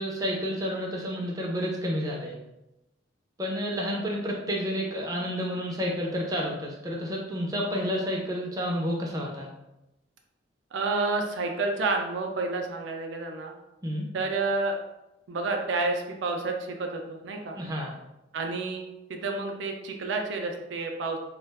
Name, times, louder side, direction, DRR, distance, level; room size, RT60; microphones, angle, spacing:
voice 1, 0.0-2.3 3.4-9.5 13.8-14.1 17.5-17.9, equal, 20° right, -2 dB, 0.4 m, -30 dB
voice 2, 10.7-13.5 14.1-14.7 15.3-17.6 18.3-18.8 19.1-21.2, right 3 dB, 80° right, 3 dB, 0.4 m, -29 dB
2.3 x 2.2 x 3.3 m, 0.93 s
head